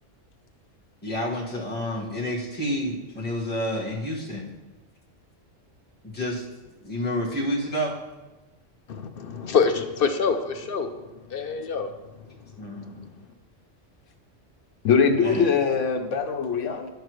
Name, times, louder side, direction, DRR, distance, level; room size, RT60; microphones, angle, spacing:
voice 1, 1.0-4.5 6.0-6.4 6.8-8.0 12.6-13.1 15.2-15.5, equal, 10° left, -7 dB, 1.6 m, -29 dB
voice 2, 8.9-10.9 11.3-11.9, left 5 dB, 55° left, 8 dB, 0.7 m, -25 dB
voice 3, 14.8-16.9, left 6 dB, 85° left, 5 dB, 1.2 m, -22 dB
11.0 x 6.5 x 3.2 m, 1.1 s
omnidirectional pair, 1.3 m